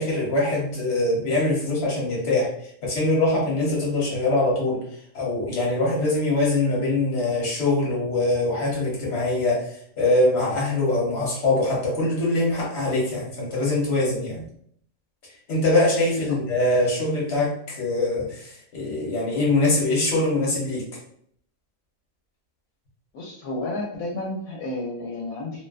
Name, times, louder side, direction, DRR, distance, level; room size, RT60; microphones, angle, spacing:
voice 1, 0.0-2.5 2.8-4.8 5.1-14.4 15.5-20.8, left 2 dB, 55° left, -4 dB, 1.2 m, -23 dB
voice 2, 23.1-25.6, left 2 dB, 80° left, -2 dB, 1.0 m, -32 dB
2.6 x 2.1 x 2.3 m, 0.64 s
omnidirectional pair, 1.5 m